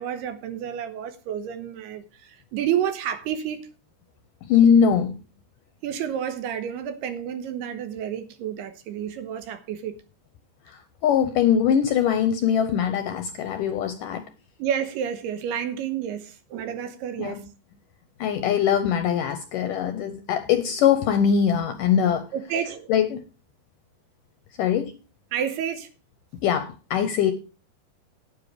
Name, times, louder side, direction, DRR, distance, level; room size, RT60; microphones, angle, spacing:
voice 1, 0.0-2.0 2.5-3.6 5.8-10.0 14.6-17.4 22.3-22.9 25.3-25.9, right 9 dB, 80° right, 3.1 m, -30 dB
voice 2, 4.4-5.2 10.7-14.3 17.2-17.5 18.2-22.3 22.9-23.2 24.6-24.9 26.4-27.3, left 8 dB, 75° left, 2.0 m, -22 dB
10.5 x 9.6 x 5.0 m
omnidirectional pair, 4.8 m